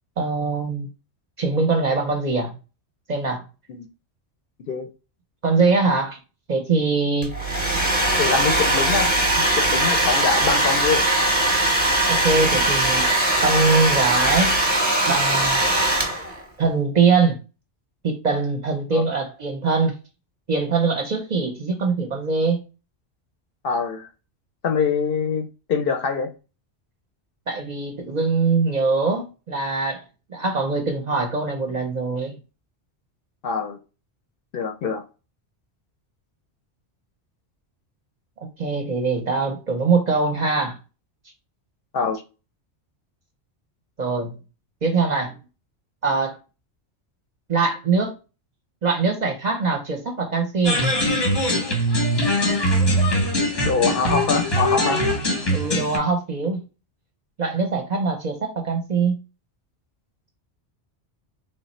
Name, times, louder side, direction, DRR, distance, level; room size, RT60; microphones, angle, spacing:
voice 1, 0.2-0.9 1.4-2.5 3.1-3.4 5.4-6.2 6.5-7.3 12.1-13.1 13.4-14.6 15.1-15.7 16.6-17.4 18.0-19.9 20.5-22.6 27.5-30.0 30.3-32.4 38.6-40.8 44.0-44.4 44.8-45.4 46.0-46.4 47.5-48.1 48.8-50.8 55.5-56.6 57.4-59.2, right 4 dB, 45° right, 0.6 m, -22 dB
Domestic sounds home sounds, 7.2-16.4, right 1 dB, 10° right, 0.8 m, -20 dB
voice 2, 8.2-11.1 18.9-19.0 23.6-24.1 24.6-26.3 33.4-33.8 34.5-35.0 41.9-42.2 53.6-55.0, left 5 dB, 60° left, 0.7 m, -24 dB
sound 1, 50.6-56.0, equal, 25° left, 0.7 m, -21 dB
3.2 x 2.0 x 4.1 m
omnidirectional pair, 1.2 m